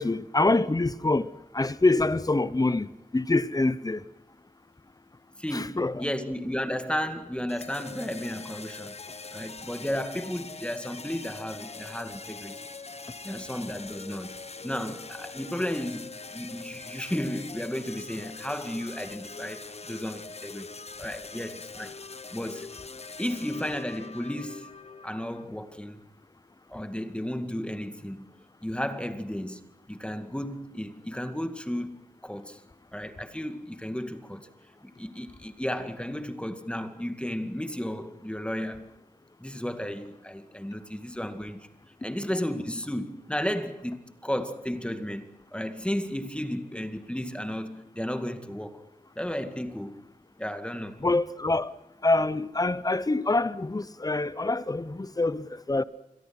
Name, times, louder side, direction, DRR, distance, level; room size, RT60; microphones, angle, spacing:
voice 1, 0.0-4.0 5.5-6.0 51.0-51.7 52.0-55.8, left 2 dB, 25° left, 1.0 m, -25 dB
voice 2, 5.4-9.0 9.3-12.6 13.2-14.3 14.6-20.7 21.0-21.9 22.3-22.7 23.2-24.7 25.0-26.0 26.7-28.3 28.6-29.6 29.9-32.6 32.9-34.5 34.8-38.9 39.4-41.7 42.0-48.8 49.2-50.0 50.4-51.0, equal, 5° left, 2.1 m, -33 dB
sound 1, 7.5-25.4, left 4 dB, 50° left, 1.1 m, -43 dB
29.5 x 22.0 x 6.0 m
wide cardioid pair, 95°, 14 cm